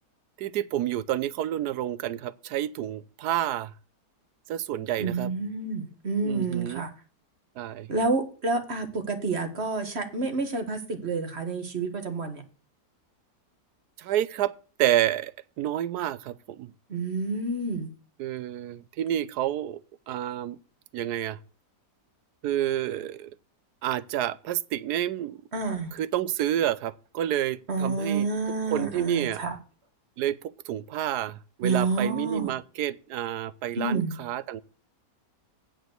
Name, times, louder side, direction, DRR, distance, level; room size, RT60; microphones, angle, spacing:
voice 1, 0.4-3.7 4.5-5.3 6.2-6.8 7.6-7.9 14.0-14.5 14.8-15.3 15.6-16.7 18.2-19.8 20.1-20.6 20.9-21.4 22.4-23.3 23.8-25.4 25.9-28.3 28.7-29.4 30.2-30.4 30.7-34.6, right 12 dB, 75° right, 1.2 m, -29 dB
voice 2, 5.0-6.9 7.9-12.4 16.9-17.9 25.5-25.9 27.7-29.6 31.6-32.5 33.8-34.1, right 3 dB, 40° right, 1.8 m, -29 dB
8.9 x 5.1 x 7.9 m
omnidirectional pair, 1.8 m